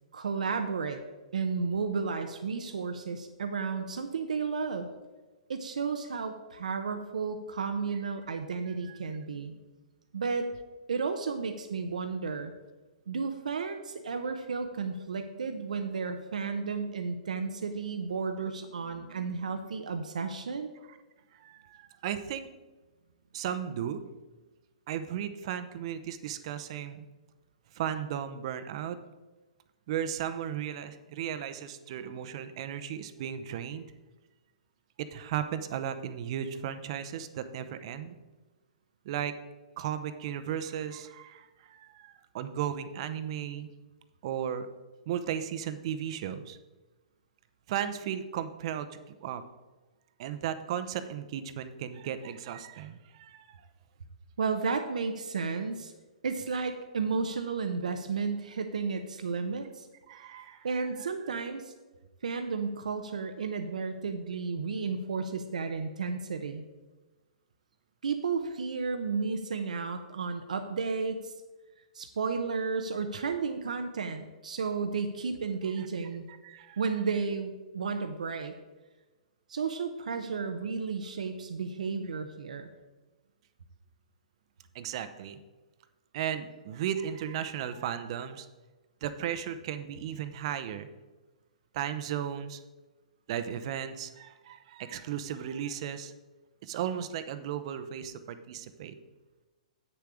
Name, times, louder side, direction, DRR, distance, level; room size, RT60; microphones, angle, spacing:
voice 1, 0.1-1.0 1.3-4.9 5.5-9.5 10.1-10.5 10.9-12.5 13.1-20.7 54.4-55.9 56.2-59.9 60.6-61.7 62.2-66.6 68.0-71.3 71.9-76.2 76.8-78.5 79.5-82.7, right 5 dB, 80° right, 7 dB, 0.8 m, -33 dB
voice 2, 8.7-9.0 20.9-21.0 21.3-22.5 23.3-24.0 24.9-27.1 27.7-29.0 29.9-33.8 35.0-38.1 39.0-39.4 39.8-43.7 44.2-44.7 45.1-46.6 47.7-49.4 50.2-53.6 60.1-60.7 75.8-75.9 76.3-76.8 84.7-85.4 86.1-88.5 89.0-90.9 91.7-92.6 93.3-96.1 96.6-98.9, right 9 dB, 50° right, 10 dB, 0.7 m, -35 dB
8.4 x 6.9 x 4.9 m, 1.2 s
hypercardioid pair, 135°, 4 cm